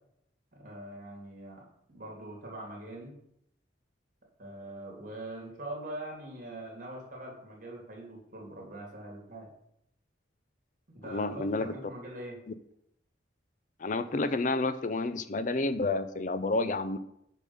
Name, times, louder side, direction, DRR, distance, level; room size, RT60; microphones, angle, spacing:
voice 1, 0.5-3.2 4.4-9.5 10.9-12.4, right 1 dB, 45° right, -1 dB, 2.7 m, -43 dB
voice 2, 11.1-11.7 13.8-17.0, left 2 dB, 40° left, 12 dB, 0.5 m, -30 dB
8.4 x 5.5 x 5.5 m, 0.77 s
head